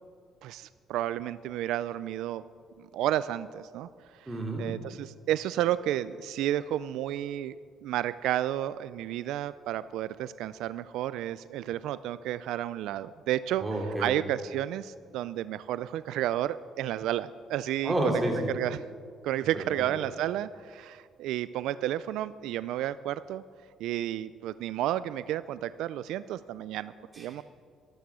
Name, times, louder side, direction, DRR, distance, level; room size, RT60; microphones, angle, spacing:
voice 1, 0.4-2.4 2.8-3.9 4.2-4.3 4.6-7.6 7.8-13.7 14.0-18.2 18.5-18.8 19.2-23.4 23.8-27.4, right 12 dB, 80° right, 15 dB, 0.3 m, -31 dB
voice 2, 4.3-4.6 13.6-14.2 17.8-18.5 19.5-19.6 27.1-27.4, right 1 dB, 15° right, 0 dB, 2.8 m, -30 dB
13.0 x 13.0 x 6.2 m, 2.1 s
cardioid pair, 130°, 0 cm